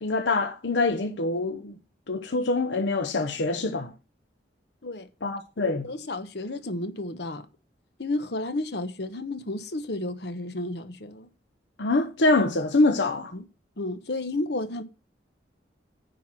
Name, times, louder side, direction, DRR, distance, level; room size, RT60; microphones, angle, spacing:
voice 1, 0.0-1.8 2.1-3.9 5.2-5.9 11.8-13.3, left 2 dB, 80° left, 0.8 m, -25 dB
voice 2, 5.6-7.5 8.0-11.3 13.3-13.4 13.8-14.8, left 2 dB, 65° left, 1.1 m, -32 dB
10.0 x 4.6 x 6.1 m
head